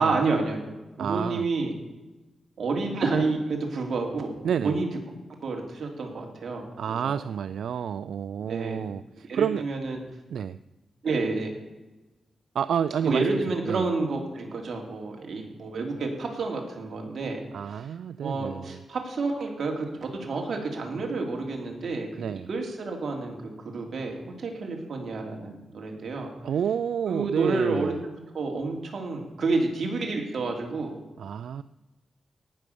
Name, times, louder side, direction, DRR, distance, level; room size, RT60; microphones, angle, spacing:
voice 1, 0.0-1.7 2.6-4.3 4.6-4.9 5.4-7.2 8.5-8.9 9.3-10.0 11.0-11.5 13.0-17.4 17.7-17.9 18.2-26.3 27.1-31.0, right 3 dB, 60° right, 2 dB, 3.0 m, -29 dB
voice 2, 1.0-1.4 4.4-4.8 6.8-9.7 10.3-10.6 12.5-13.2 13.7-13.9 17.5-18.8 22.2-22.5 26.4-28.0 31.2-31.6, right 8 dB, 90° right, 14 dB, 0.3 m, -29 dB
18.0 x 6.3 x 6.8 m, 1.1 s
wide cardioid pair, 110°, 0 cm